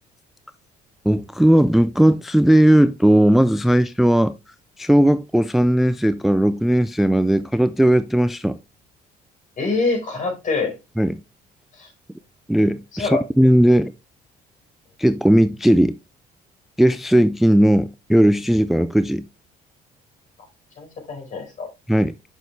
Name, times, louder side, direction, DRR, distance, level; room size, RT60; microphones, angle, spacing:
voice 1, 1.1-4.3 4.8-8.6 11.0-11.2 12.5-13.9 15.0-16.0 16.8-19.3 21.9-22.1, right 1 dB, ahead, 0.3 m, -17 dB
voice 2, 9.6-10.7 11.7-11.9 12.9-13.2 20.8-21.7, left 3 dB, 50° left, 5.0 m, -25 dB
6.8 x 6.3 x 3.3 m
cardioid pair, 110°, 17 cm